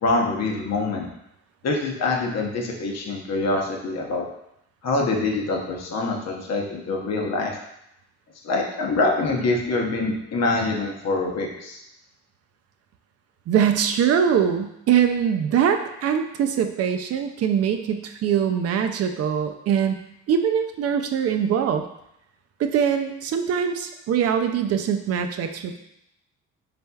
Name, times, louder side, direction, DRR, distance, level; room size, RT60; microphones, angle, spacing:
voice 1, 0.0-1.1 1.6-4.3 4.8-7.6 8.4-11.8, left 3 dB, 60° left, 0 dB, 0.8 m, -25 dB
voice 2, 13.5-20.0 20.3-21.8 22.6-25.8, right 8 dB, 55° right, 7 dB, 0.4 m, -22 dB
4.1 x 3.3 x 2.2 m, 0.80 s
cardioid pair, 90°, 30 cm